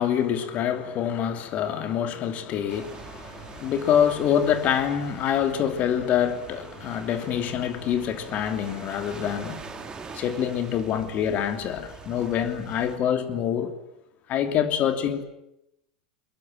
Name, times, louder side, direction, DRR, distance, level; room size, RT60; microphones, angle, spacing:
voice 1, 0.0-9.8 10.1-13.7 14.3-15.2, left 9 dB, 40° left, 3.1 m, -26 dB
sound 1, 2.7-13.0, right 5 dB, 20° right, 3.4 m, -43 dB
23.0 x 22.0 x 8.8 m
figure-of-eight pair, 85°, 4 cm